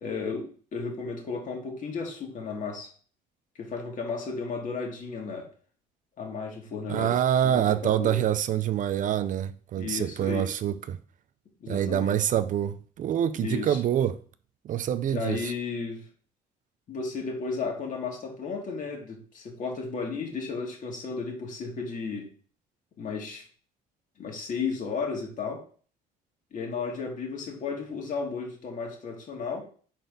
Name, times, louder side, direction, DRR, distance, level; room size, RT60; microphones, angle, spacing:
voice 1, 0.0-2.9 3.6-5.5 6.2-7.2 7.4-8.2 9.7-10.4 11.6-12.2 13.4-13.8 15.1-16.1 16.9-22.3 23.0-23.5 24.2-25.6 26.5-29.6, left 4 dB, 50° left, 2.1 m, -34 dB
voice 2, 6.9-11.0 11.7-14.2 14.6-15.5, right 10 dB, 50° right, 0.5 m, -26 dB
4.4 x 4.1 x 5.4 m
cardioid pair, 110°, 17 cm